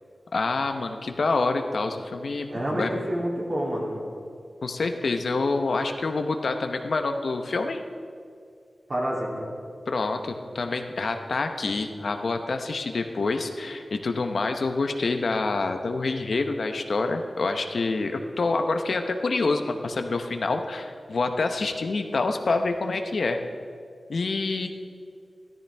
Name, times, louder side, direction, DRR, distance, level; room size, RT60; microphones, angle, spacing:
voice 1, 0.3-2.9 4.6-7.8 9.9-23.4 24.1-24.7, left 3 dB, 70° left, 6 dB, 0.8 m, -27 dB
voice 2, 2.5-4.1 8.9-9.5, equal, 45° right, -4 dB, 2.7 m, -28 dB
13.5 x 13.5 x 3.4 m, 2.3 s
wide cardioid pair, 105°, 0 cm